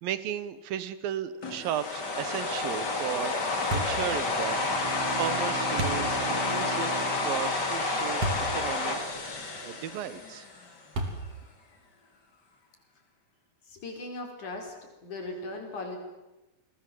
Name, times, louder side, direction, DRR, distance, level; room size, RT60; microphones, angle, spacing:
voice 1, 0.0-4.6 5.2-8.3 8.5-9.0 9.6-10.5, right 10 dB, 75° right, 14 dB, 2.9 m, -35 dB
sound 1, 1.4-10.6, left 3 dB, 30° left, 2.9 m, -30 dB
sound 2, 3.7-4.0 5.8-6.1 8.2-8.5 9.1-9.2 10.9-11.4, right 1 dB, 45° right, 4.0 m, -30 dB
Bowed string instrument, 4.1-8.7, right 3 dB, 5° right, 4.5 m, -39 dB
voice 2, 13.7-14.7 15.0-16.0, left 2 dB, 55° left, 3 dB, 6.0 m, -38 dB
29.0 x 21.0 x 7.9 m, 1.1 s
omnidirectional pair, 4.2 m